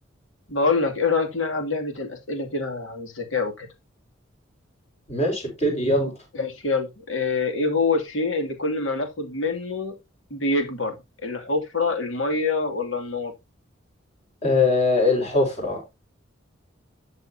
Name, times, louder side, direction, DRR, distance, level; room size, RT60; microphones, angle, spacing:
voice 1, 0.5-3.7 6.3-9.9 10.3-10.9 11.2-13.3, left 3 dB, 85° left, 2.5 m, -25 dB
voice 2, 5.1-6.1 14.4-15.8, left 2 dB, 35° left, 5.0 m, -21 dB
12.0 x 6.9 x 2.8 m
head